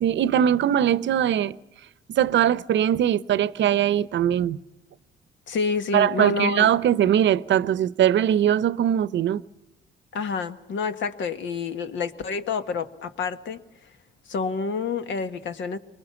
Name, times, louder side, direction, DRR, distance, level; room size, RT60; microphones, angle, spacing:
voice 1, 0.0-1.5 2.1-4.6 5.9-9.4, right 10 dB, 65° right, 0.8 m, -21 dB
voice 2, 5.5-6.7 10.1-13.6 14.3-15.8, left 4 dB, 70° left, 1.5 m, -28 dB
23.5 x 20.0 x 7.0 m
cardioid pair, 90°, 20 cm